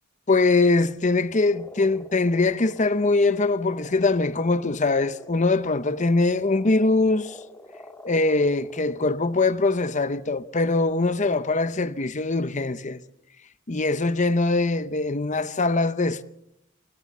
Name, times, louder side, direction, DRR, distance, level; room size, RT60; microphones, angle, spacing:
voice 1, 0.3-7.4 8.0-13.0 13.7-16.2, left 3 dB, 35° left, 0.8 m, -22 dB
Frog, 1.4-9.2, left 1 dB, 10° left, 2.2 m, -46 dB
28.5 x 16.5 x 7.3 m
head